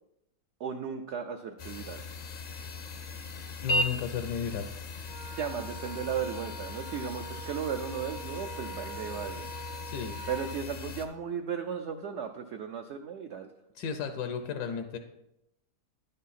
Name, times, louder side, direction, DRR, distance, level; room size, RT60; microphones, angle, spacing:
voice 1, 0.6-2.0 5.4-9.5 10.3-13.5, right 7 dB, 75° right, 6 dB, 0.6 m, -35 dB
sound 1, 1.6-11.1, left 2 dB, 60° left, 0.5 m, -38 dB
voice 2, 3.6-4.7 9.9-10.2 13.7-15.0, left 7 dB, 80° left, 7 dB, 1.2 m, -33 dB
Wind instrument woodwind instrument, 5.0-10.6, right 2 dB, 30° right, 0.4 m, -44 dB
10.0 x 5.5 x 4.1 m, 0.85 s
omnidirectional pair, 1.7 m